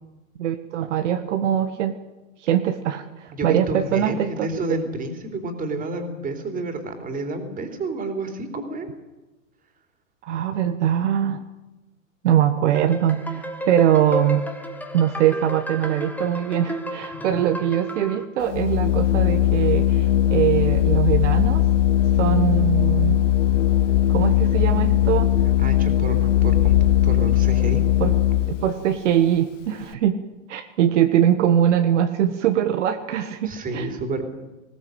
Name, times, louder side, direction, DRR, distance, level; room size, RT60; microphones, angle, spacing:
voice 1, 0.4-2.0 2.4-4.5 10.2-11.4 12.2-14.5 14.9-21.6 22.2-23.2 24.1-25.3 28.0-28.1 28.6-30.2 30.5-33.9, right 10 dB, 60° right, 7 dB, 1.5 m, -22 dB
voice 2, 3.4-8.9 17.1-17.4 25.6-26.8 27.0-27.8 33.4-34.2, right 2 dB, 20° right, 6 dB, 3.5 m, -30 dB
sound 1, 12.8-18.2, equal, 5° left, 1.6 m, -32 dB
Organ, 18.4-28.7, left 12 dB, 60° left, 1.3 m, -19 dB
20.5 x 16.5 x 8.0 m, 1.1 s
hypercardioid pair, 120°, 41 cm